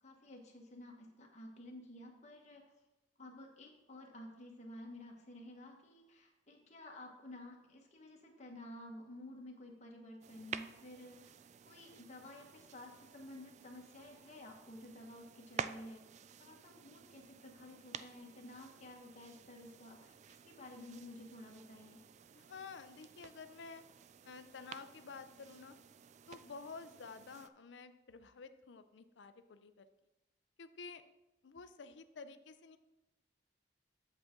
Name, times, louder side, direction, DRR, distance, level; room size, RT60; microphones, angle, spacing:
voice 1, 0.0-2.7 3.2-11.3 11.6-16.1 16.4-22.0, left 1 dB, 40° left, 0 dB, 1.3 m, -52 dB
sound 1, 10.2-27.5, right 7 dB, 40° right, 0.3 m, -51 dB
voice 2, 22.3-23.8 24.3-25.8 26.3-29.9 30.6-31.0 31.4-32.8, left 4 dB, 75° left, 11 dB, 0.5 m, -51 dB
8.0 x 7.3 x 3.7 m, 0.97 s
head